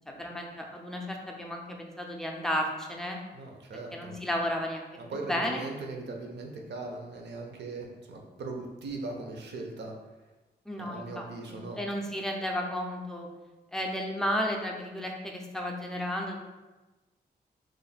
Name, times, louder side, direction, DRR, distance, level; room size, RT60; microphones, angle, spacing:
voice 1, 0.1-3.2 3.9-4.8 5.1-5.7 10.7-13.3 13.7-16.4, equal, 5° left, 0 dB, 0.4 m, -33 dB
voice 2, 3.3-4.2 5.0-9.9 10.8-11.8, right 3 dB, 75° right, 1 dB, 0.6 m, -39 dB
3.1 x 2.1 x 4.0 m, 1.1 s
wide cardioid pair, 160°, 18 cm